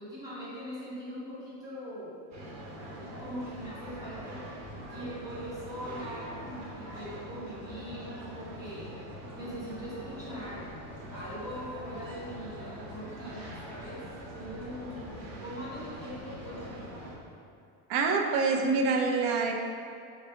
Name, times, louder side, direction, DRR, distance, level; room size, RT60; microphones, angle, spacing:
voice 1, 0.0-2.2 3.2-4.5 4.9-8.9 9.3-10.7 11.1-14.1 14.3-16.9, equal, 10° right, -10 dB, 1.1 m, -41 dB
sound 1, 2.3-17.1, equal, 40° right, 1.0 m, -43 dB
voice 2, 17.9-19.5, right 4 dB, 70° right, 2 dB, 0.6 m, -26 dB
4.0 x 2.6 x 4.6 m, 2.4 s
cardioid pair, 175°, 40 cm